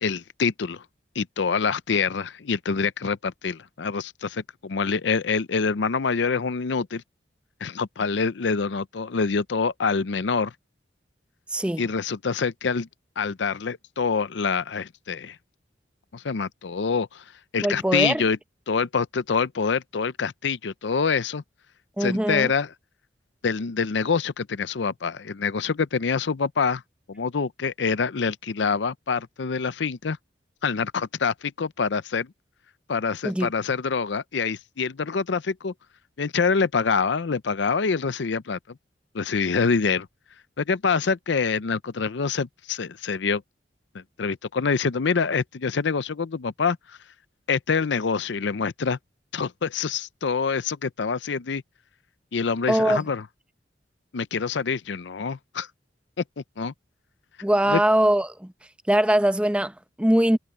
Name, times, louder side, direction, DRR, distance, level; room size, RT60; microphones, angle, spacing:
voice 1, 0.0-0.8 1.2-7.0 7.6-10.5 11.8-12.9 13.2-15.4 16.1-17.2 17.5-18.4 18.7-21.4 22.0-22.7 23.4-26.8 27.1-30.2 30.6-32.3 32.9-35.7 36.2-38.8 39.1-40.1 40.6-43.4 43.9-47.0 47.5-49.0 49.3-51.6 52.3-53.2 54.1-55.7 56.2-56.7 57.7-57.8, left 5 dB, 75° left, 0.6 m, -26 dB
voice 2, 11.5-11.9 17.6-18.2 22.0-22.5 33.2-33.5 52.7-53.0 57.4-58.5 58.9-60.4, right 1 dB, 5° right, 0.7 m, -22 dB
head